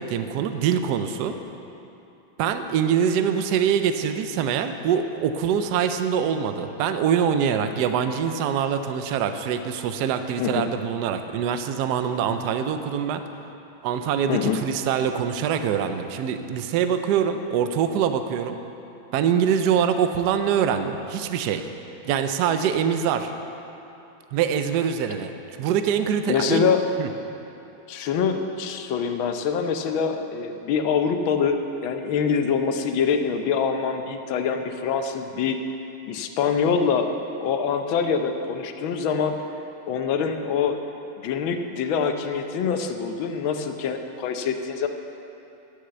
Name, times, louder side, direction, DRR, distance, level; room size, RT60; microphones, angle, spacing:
voice 1, 0.0-1.4 2.4-13.2 13.8-18.6 19.1-21.6 22.1-23.3 24.3-25.3 25.6-26.7 27.0-27.1, right 8 dB, 70° right, 8 dB, 1.1 m, -24 dB
voice 2, 10.4-10.7 14.3-14.6 26.3-26.8 27.9-35.6 36.1-37.1 37.4-39.4 39.9-40.8 41.2-44.9, left 6 dB, 85° left, 6 dB, 1.5 m, -25 dB
11.5 x 6.4 x 8.0 m, 2.9 s
omnidirectional pair, 2.1 m